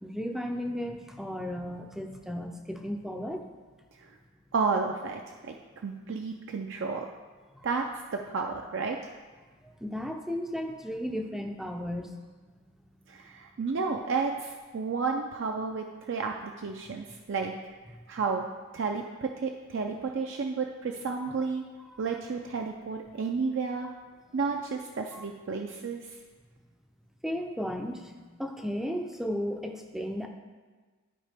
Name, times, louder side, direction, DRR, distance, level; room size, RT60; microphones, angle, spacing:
voice 1, 0.0-3.5 7.5-7.7 9.6-12.2 21.3-21.4 21.9-22.0 25.1-25.2 27.2-30.3, equal, ahead, 3 dB, 0.4 m, -35 dB
voice 2, 4.5-5.5 5.8-7.1 7.6-9.0 13.1-17.5 18.1-18.4 18.7-21.6 22.0-23.9 24.3-26.1, right 4 dB, 55° right, 2 dB, 0.4 m, -32 dB
12.0 x 4.8 x 3.4 m, 1.4 s
head